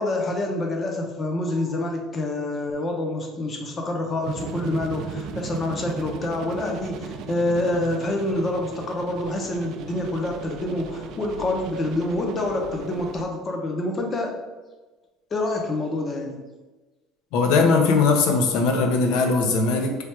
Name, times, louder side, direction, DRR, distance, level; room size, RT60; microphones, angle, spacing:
voice 1, 0.0-14.3 15.3-16.4, left 2 dB, 25° left, 1 dB, 0.6 m, -27 dB
sound 1, 4.2-13.2, right 6 dB, 55° right, 0.3 m, -37 dB
voice 2, 17.3-20.0, left 4 dB, 70° left, 4 dB, 0.6 m, -20 dB
3.3 x 2.4 x 4.3 m, 1.2 s
cardioid pair, 150°, 0 cm